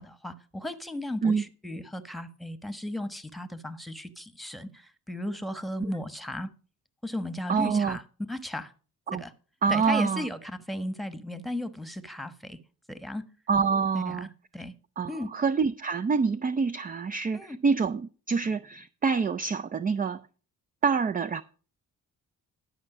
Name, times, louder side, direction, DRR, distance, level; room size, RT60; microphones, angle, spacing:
voice 1, 0.0-6.5 7.0-8.0 8.3-8.7 9.1-9.3 9.7-12.6 12.9-13.2 13.9-14.3 14.5-14.7 15.1-15.3 17.3-17.6, left 1 dB, ahead, 1.2 m, -35 dB
voice 2, 7.5-8.0 9.1-9.2 9.6-10.3 13.5-14.3 15.0-20.2 20.8-21.4, right 5 dB, 25° right, 0.4 m, -26 dB
12.0 x 5.5 x 6.0 m
supercardioid pair, 60°, 39 cm